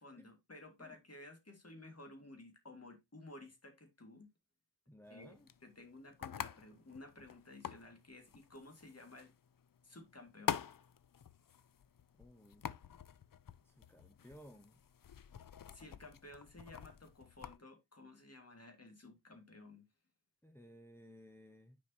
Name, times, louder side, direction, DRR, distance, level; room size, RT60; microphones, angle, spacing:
voice 1, 0.0-4.3 5.1-9.3 9.8-10.6 15.7-19.9, left 2 dB, 50° left, 2.1 m, -55 dB
voice 2, 4.9-5.5 12.2-12.7 13.6-14.8 20.4-21.8, equal, 5° left, 0.8 m, -58 dB
sound 1, 5.1-17.6, left 8 dB, 85° left, 0.5 m, -47 dB
10.0 x 5.1 x 2.8 m
wide cardioid pair, 55°, 33 cm